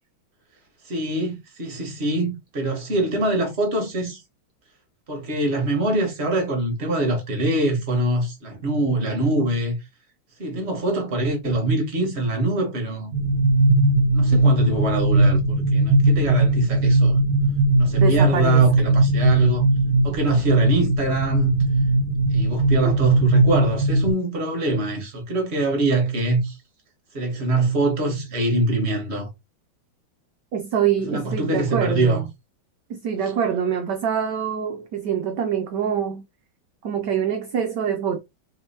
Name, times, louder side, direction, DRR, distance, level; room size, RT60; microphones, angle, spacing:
voice 1, 0.9-4.2 5.1-9.7 10.4-13.1 14.1-17.2 17.8-19.7 20.0-21.5 22.3-26.6 27.1-29.3 31.1-32.3, right 2 dB, 35° right, 1.6 m, -23 dB
sound 1, 13.1-24.1, right 2 dB, 85° right, 1.5 m, -19 dB
voice 2, 18.0-18.6 22.8-22.9 30.5-32.3 32.9-36.2 36.8-38.2, right 8 dB, 65° right, 1.2 m, -25 dB
3.5 x 3.0 x 4.2 m
omnidirectional pair, 2.2 m